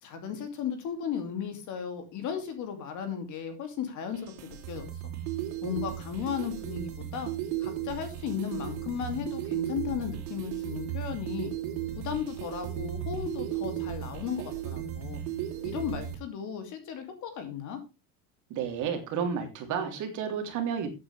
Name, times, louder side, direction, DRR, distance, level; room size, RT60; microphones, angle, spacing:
voice 1, 0.0-5.1 5.6-7.3 7.6-11.5 12.0-15.2 15.6-17.8, left 8 dB, 40° left, 7 dB, 2.7 m, -35 dB
sound 1, 4.1-16.2, right 12 dB, 60° right, 3.7 m, -35 dB
voice 2, 18.5-20.9, right 7 dB, 40° right, 5 dB, 3.2 m, -31 dB
14.5 x 8.8 x 3.4 m, 0.26 s
cardioid pair, 170°, 47 cm